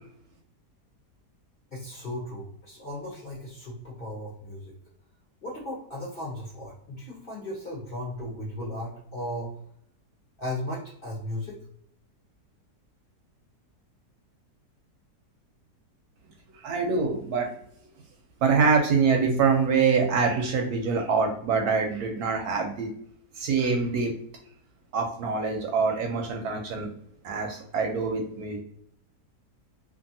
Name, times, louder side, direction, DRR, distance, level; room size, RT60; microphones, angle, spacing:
voice 1, 1.7-4.7 5.4-9.5 10.4-11.6, left 1 dB, 45° left, -5 dB, 0.7 m, -36 dB
voice 2, 16.6-17.5 18.4-22.9 23.4-24.1 24.9-26.9 27.2-28.6, right 5 dB, 70° right, 2 dB, 1.0 m, -25 dB
2.6 x 2.6 x 2.6 m, 0.67 s
omnidirectional pair, 1.8 m